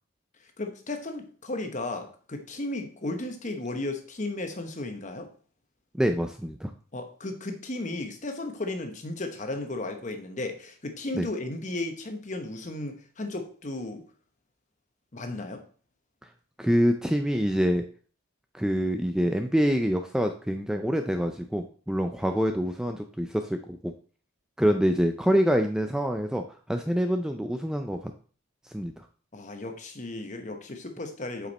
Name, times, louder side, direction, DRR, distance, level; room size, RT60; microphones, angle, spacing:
voice 1, 0.6-5.3 6.9-14.0 15.1-15.6 29.3-31.5, left 2 dB, 35° left, 6 dB, 1.0 m, -34 dB
voice 2, 5.9-6.7 11.1-11.3 16.6-17.8 18.5-23.9 24.6-28.0 28.6-29.1, equal, 5° right, 5 dB, 0.3 m, -26 dB
7.9 x 5.2 x 4.2 m, 0.43 s
head